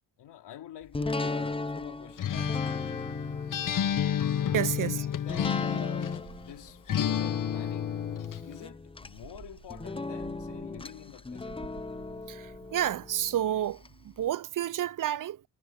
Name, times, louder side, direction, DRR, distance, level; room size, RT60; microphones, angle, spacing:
voice 1, 0.2-2.9 4.7-8.1 8.4-11.6, left 11 dB, 90° left, 3.1 m, -47 dB
sound 1, 0.9-13.9 14.3-14.4, left 3 dB, 15° left, 0.7 m, -37 dB
Acoustic guitar, 2.2-6.3 6.9-8.5, left 9 dB, 50° left, 0.9 m, -30 dB
sound 2, 3.4-5.2 6.1-7.6 9.0-11.1 11.4-13.1, right 10 dB, 75° right, 7.7 m, -54 dB
voice 2, 4.5-5.1 12.3-15.5, right 11 dB, 50° right, 0.5 m, -30 dB
cardioid pair, 90°, 40 cm